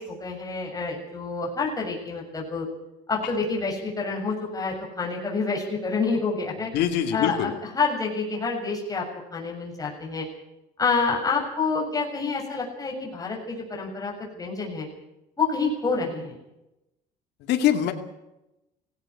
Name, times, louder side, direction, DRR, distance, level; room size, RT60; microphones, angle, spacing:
voice 1, 0.0-2.7 3.1-6.7 7.1-9.0 9.3-10.3 10.8-14.9 15.4-16.4, left 4 dB, 20° left, -2 dB, 7.1 m, -28 dB
voice 2, 6.7-7.5 17.5-17.9, left 10 dB, 85° left, 5 dB, 2.4 m, -23 dB
18.0 x 16.5 x 9.8 m, 0.92 s
cardioid pair, 110°, 17 cm